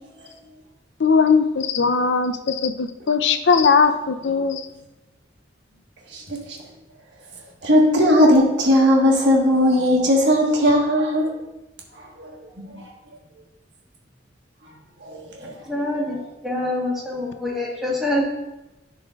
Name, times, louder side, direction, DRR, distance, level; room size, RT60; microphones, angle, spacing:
voice 1, 1.0-4.6, left 5 dB, 70° left, 9 dB, 0.5 m, -19 dB
voice 2, 6.1-6.6 7.6-11.4 12.2-12.8 15.0-15.6, equal, 70° right, -1 dB, 1.5 m, -18 dB
voice 3, 15.7-16.2 16.4-18.3, left 1 dB, ahead, -4 dB, 1.6 m, -25 dB
11.0 x 4.8 x 2.4 m, 0.97 s
head